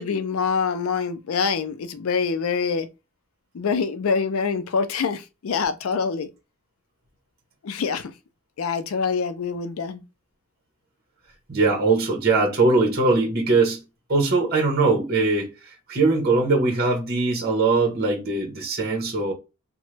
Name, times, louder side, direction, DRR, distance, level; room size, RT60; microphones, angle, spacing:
voice 1, 0.0-2.9 3.5-6.3 7.6-8.1 8.6-10.0, left 5 dB, 80° left, 0.4 m, -25 dB
voice 2, 11.5-13.8 14.1-15.5 15.9-19.3, right 3 dB, 50° right, 0.9 m, -21 dB
2.9 x 2.1 x 3.2 m
head